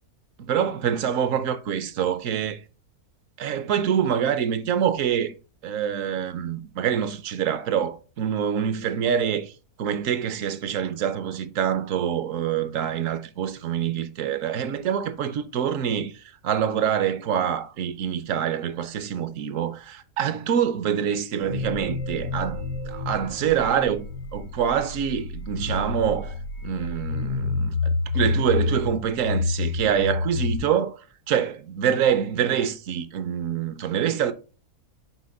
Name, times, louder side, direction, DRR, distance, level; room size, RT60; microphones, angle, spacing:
voice 1, 0.4-2.6 3.4-5.3 5.6-9.5 9.8-22.6 22.9-24.1 24.3-26.4 26.6-34.3, right 8 dB, 65° right, 0.9 m, -25 dB
sound 1, 21.4-30.6, left 3 dB, 85° right, 2.3 m, -29 dB
5.9 x 4.1 x 4.1 m
omnidirectional pair, 1.6 m